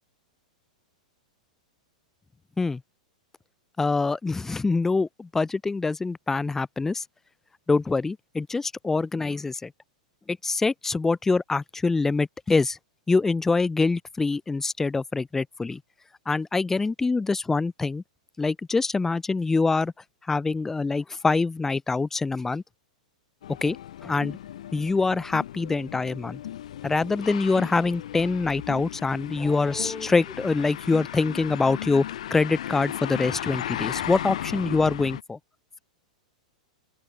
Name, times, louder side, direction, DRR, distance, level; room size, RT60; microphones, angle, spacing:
voice 1, 3.8-7.0 7.7-9.7 10.3-12.8 13.1-15.8 16.3-18.0 18.4-19.9 20.3-22.6 23.6-23.8 24.0-24.4 24.7-26.4 26.8-32.0 32.3-35.4, left 3 dB, 10° left, 0.4 m, -25 dB
sound 1, 23.4-35.2, left 11 dB, 60° left, 0.5 m, -36 dB
open air
figure-of-eight pair, 100°, 4 cm